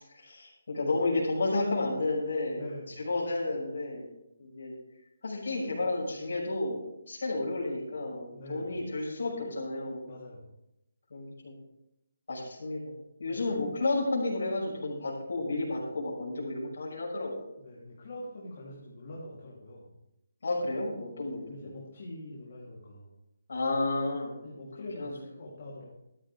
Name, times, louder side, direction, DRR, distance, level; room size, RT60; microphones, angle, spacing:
voice 1, 0.1-2.7 3.0-4.1 4.4-4.7 5.2-6.8 7.1-10.0 11.1-11.5 12.3-12.9 13.2-17.5 20.4-21.7 23.5-24.4 25.0-25.1, left 2 dB, 65° left, -5 dB, 6.1 m, -31 dB
voice 2, 2.5-3.1 8.3-8.8 10.1-10.5 13.3-13.5 17.6-19.9 21.5-23.1 24.4-25.9, left 1 dB, 50° left, -6 dB, 3.6 m, -44 dB
13.5 x 13.0 x 3.6 m, 0.86 s
hypercardioid pair, 160°, 0 cm